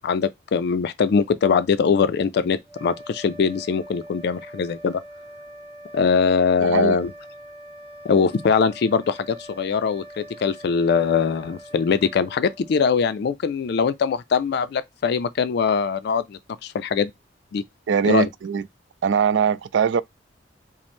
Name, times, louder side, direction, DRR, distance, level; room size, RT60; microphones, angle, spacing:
voice 1, 0.0-5.0 5.9-7.1 8.0-17.1 17.5-17.6 18.0-18.3, left 5 dB, 60° left, 0.4 m, -22 dB
sound 1, 2.6-13.3, right 1 dB, 30° right, 1.3 m, -43 dB
voice 2, 6.6-7.0 17.9-18.6 19.0-20.0, right 6 dB, 80° right, 0.3 m, -21 dB
5.0 x 2.0 x 3.4 m
head